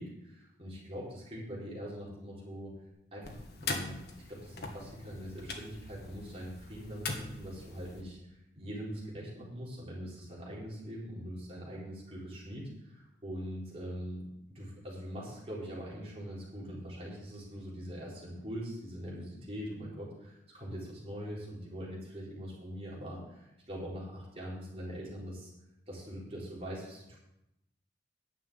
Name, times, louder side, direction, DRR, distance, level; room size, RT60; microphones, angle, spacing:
voice 1, 0.0-2.7 3.1-4.0 4.3-14.2 14.5-25.5 25.9-27.2, equal, 35° right, -6 dB, 4.3 m, -42 dB
sound 1, 3.2-8.0, left 3 dB, 60° left, 1.8 m, -41 dB
10.5 x 7.4 x 8.5 m, 0.89 s
head